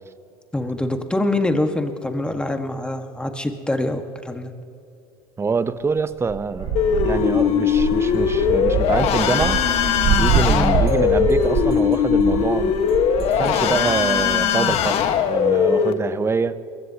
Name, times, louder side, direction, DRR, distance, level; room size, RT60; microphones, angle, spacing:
voice 1, 0.5-4.5 10.5-10.8, left 1 dB, 10° left, 5 dB, 1.5 m, -24 dB
voice 2, 5.4-9.6 10.1-12.7 13.4-15.0 15.3-16.6, right 4 dB, 20° right, 13 dB, 0.7 m, -25 dB
sound 1, 6.3-13.8, right 6 dB, 60° right, 1.8 m, -25 dB
Bowed string instrument, 6.6-10.7, left 6 dB, 40° left, 2.4 m, -39 dB
sound 2, 6.8-15.9, left 7 dB, 55° left, 1.4 m, -20 dB
22.5 x 21.5 x 2.9 m, 2.5 s
supercardioid pair, 100°, 12 cm